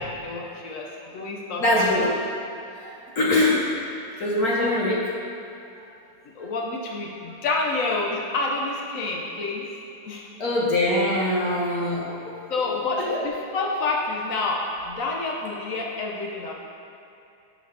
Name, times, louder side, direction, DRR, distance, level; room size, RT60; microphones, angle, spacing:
voice 1, 0.2-0.9 1.1-2.1 4.6-4.7 6.4-9.7 10.1-10.4 12.5-16.5, left 3 dB, 75° left, -1 dB, 0.7 m, -28 dB
voice 2, 1.6-2.1 2.8-3.7 4.2-5.0 10.4-12.4 13.0-13.2, left 1 dB, 55° left, -4 dB, 1.2 m, -23 dB
11.0 x 5.3 x 3.3 m, 2.6 s
omnidirectional pair, 2.4 m